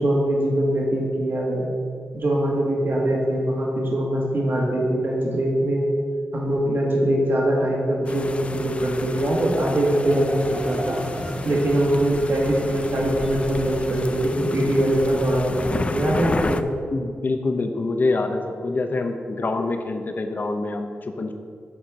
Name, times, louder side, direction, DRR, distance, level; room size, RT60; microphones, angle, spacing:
voice 1, 0.0-1.7 2.1-5.8 6.3-11.0 11.4-16.6, right 1 dB, 55° right, -3 dB, 1.9 m, -22 dB
sound 1, 8.0-16.6, left 3 dB, 25° left, 0.4 m, -32 dB
sound 2, 10.0-16.1, right 1 dB, 10° right, 0.6 m, -37 dB
voice 2, 16.9-21.3, left 3 dB, 45° left, 6 dB, 0.7 m, -25 dB
8.5 x 4.4 x 6.3 m, 2.2 s
wide cardioid pair, 110°, 5 cm